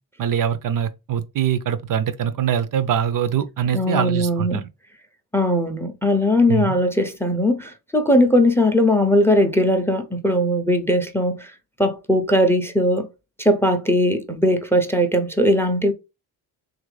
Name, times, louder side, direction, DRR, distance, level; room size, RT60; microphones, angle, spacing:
voice 1, 0.2-4.6 6.5-6.7, right 9 dB, 50° right, 0.5 m, -23 dB
voice 2, 3.7-4.6 5.3-11.5 11.8-13.1 13.4-15.9, left 1 dB, 5° left, 0.5 m, -19 dB
3.1 x 2.5 x 3.1 m
cardioid pair, 70°, 43 cm